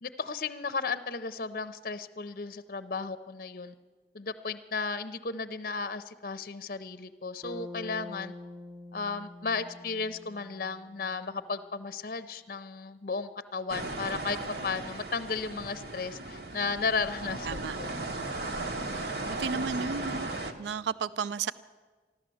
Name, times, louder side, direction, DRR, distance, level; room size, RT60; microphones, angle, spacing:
voice 1, 0.0-3.7 4.1-8.3 8.9-14.4 14.6-17.9 19.4-19.5, left 4 dB, 50° left, 13 dB, 0.6 m, -34 dB
Bass guitar, 7.4-11.5, left 2 dB, 5° right, 0.9 m, -46 dB
sound 1, 13.7-20.5, right 2 dB, 65° right, 1.2 m, -36 dB
voice 2, 17.4-17.8 19.3-20.3 20.6-21.5, right 6 dB, 80° right, 17 dB, 0.4 m, -33 dB
14.5 x 12.5 x 7.7 m, 1.4 s
head